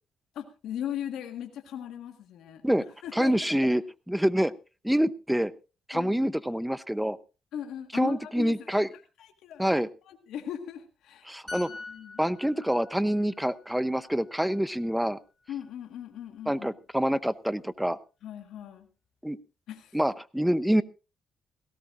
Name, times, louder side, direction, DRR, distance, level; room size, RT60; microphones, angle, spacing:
voice 1, 0.3-2.6 3.0-3.8 5.9-6.3 7.5-8.8 9.2-9.8 10.1-11.3 11.6-12.2 15.5-16.7 18.2-18.9 19.7-20.0, left 9 dB, 80° left, 5 dB, 1.6 m, -38 dB
voice 2, 3.1-3.8 4.1-4.5 4.8-5.5 5.9-7.2 7.9-8.9 9.6-9.9 11.3-11.7 12.2-15.2 16.5-18.0 19.2-19.4 19.9-20.8, equal, 5° right, 16 dB, 0.7 m, -26 dB
sound 1, 11.5-15.1 15.4-15.6, left 3 dB, 15° left, 6.2 m, -46 dB
18.0 x 17.0 x 2.6 m, 0.31 s
cardioid pair, 90°, 0 cm